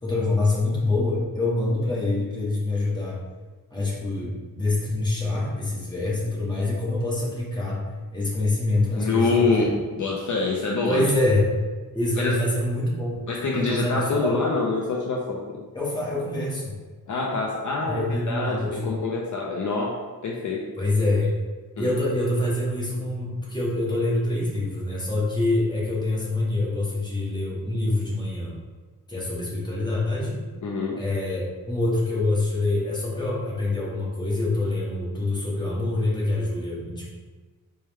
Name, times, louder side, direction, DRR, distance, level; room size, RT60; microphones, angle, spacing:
voice 1, 0.0-3.2 3.7-7.8 8.1-9.8 10.9-11.5 11.9-13.3 13.5-14.4 15.7-16.7 17.8-18.9 20.7-21.3 21.8-28.5 29.1-30.4 31.0-37.0, left 2 dB, 10° left, -6 dB, 1.0 m, -25 dB
voice 2, 9.0-11.1 12.2-12.4 13.3-15.6 17.1-20.6 21.8-21.9 30.6-31.0, left 3 dB, 55° left, -2 dB, 0.5 m, -26 dB
4.4 x 2.2 x 3.4 m, 1.3 s
wide cardioid pair, 120°, 36 cm